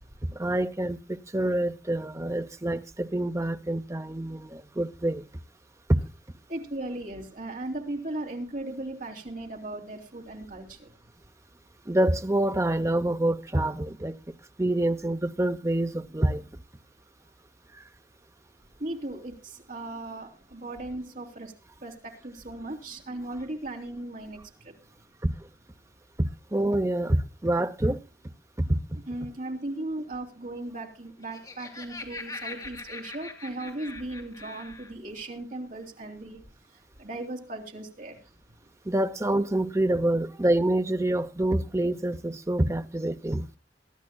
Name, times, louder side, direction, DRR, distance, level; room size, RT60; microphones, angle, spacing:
voice 1, 0.3-5.2 11.9-14.2 14.6-16.4 25.2-25.3 26.2-28.0 28.6-28.8 38.9-43.5, right 1 dB, 15° right, 0.7 m, -26 dB
voice 2, 6.5-10.9 18.8-21.5 21.8-24.7 29.1-36.4 37.0-38.2, right 1 dB, 50° right, 3.2 m, -37 dB
Laughter, 31.1-34.9, left 3 dB, 20° left, 2.8 m, -42 dB
22.5 x 12.0 x 2.3 m
head